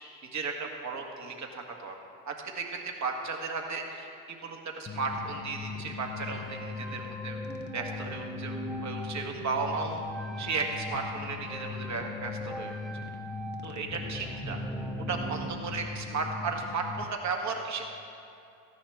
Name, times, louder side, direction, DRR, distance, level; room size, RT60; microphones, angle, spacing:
voice 1, 0.3-2.0 2.2-4.1 4.4-7.4 7.7-10.0 10.4-12.7 13.6-14.6 15.1-17.8, right 4 dB, 40° right, 2 dB, 1.8 m, -35 dB
sound 1, 4.9-17.0, left 5 dB, 25° left, 1.0 m, -40 dB
sound 2, 6.0-15.6, right 2 dB, ahead, 0.9 m, -41 dB
14.5 x 10.5 x 3.5 m, 2.6 s
hypercardioid pair, 60°, 45 cm